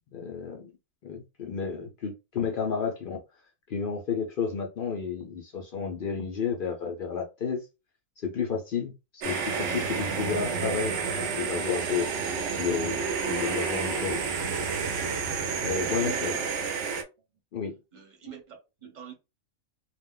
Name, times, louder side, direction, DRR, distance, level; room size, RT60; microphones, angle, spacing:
voice 1, 0.1-0.7 1.0-3.2 3.7-7.6 8.2-12.1 12.6-14.2 15.6-16.3 17.5-17.7, left 6 dB, 65° left, 0.5 m, -31 dB
sound 1, 9.2-17.0, right 5 dB, 65° right, 0.8 m, -30 dB
voice 2, 15.6-16.9 17.9-19.1, right 7 dB, 40° right, 0.9 m, -44 dB
2.4 x 2.1 x 3.6 m
omnidirectional pair, 1.5 m